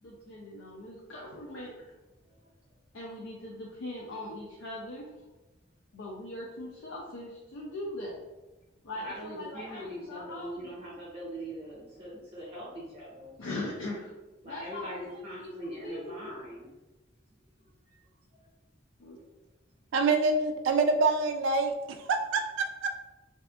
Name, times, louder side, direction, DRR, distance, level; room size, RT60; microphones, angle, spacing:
voice 1, 0.0-1.9 2.9-5.3 5.9-8.2 8.8-10.7 13.4-14.1 14.4-16.3 19.0-19.2, left 1 dB, 90° left, -3 dB, 0.5 m, -40 dB
voice 2, 8.9-13.4 14.4-16.7 17.9-18.0, right 1 dB, 30° right, -7 dB, 1.0 m, -41 dB
voice 3, 19.9-21.7 22.1-23.0, right 3 dB, 75° right, 5 dB, 0.3 m, -26 dB
3.4 x 2.7 x 2.3 m, 1.1 s
head